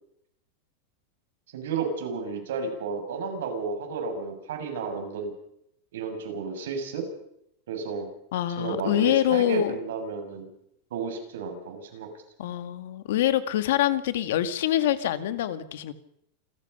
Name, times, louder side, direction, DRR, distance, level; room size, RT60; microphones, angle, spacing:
voice 1, 1.5-5.3 5.9-7.0 7.7-8.1 8.6-10.5 10.9-12.1, right 4 dB, 80° right, 4 dB, 7.1 m, -32 dB
voice 2, 8.3-9.7 12.4-15.9, left 12 dB, 65° left, 11 dB, 2.0 m, -25 dB
28.5 x 14.0 x 6.8 m, 0.75 s
supercardioid pair, 180°, 0 cm